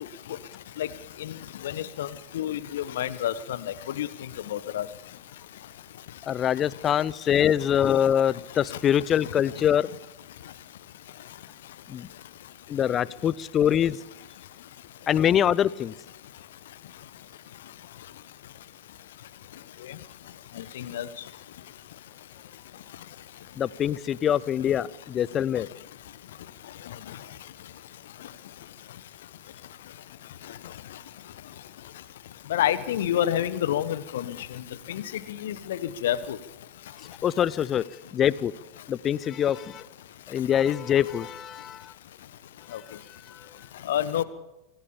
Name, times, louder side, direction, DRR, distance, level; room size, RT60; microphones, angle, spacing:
voice 1, 1.6-2.1 2.3-3.3 4.0-4.1 4.5-4.8 20.8-21.1 32.5-34.4 34.9-35.0 35.3-36.4 43.9-44.2, left 11 dB, 60° left, 15 dB, 1.3 m, -28 dB
voice 2, 6.3-9.9 11.9-12.1 12.7-14.0 15.1-15.9 23.6-25.7 37.2-37.8 38.1-38.5 38.9-39.8 40.3-41.9, left 9 dB, 25° left, 22 dB, 0.7 m, -24 dB
25.5 x 17.5 x 7.2 m, 0.99 s
figure-of-eight pair, 90°, 0 cm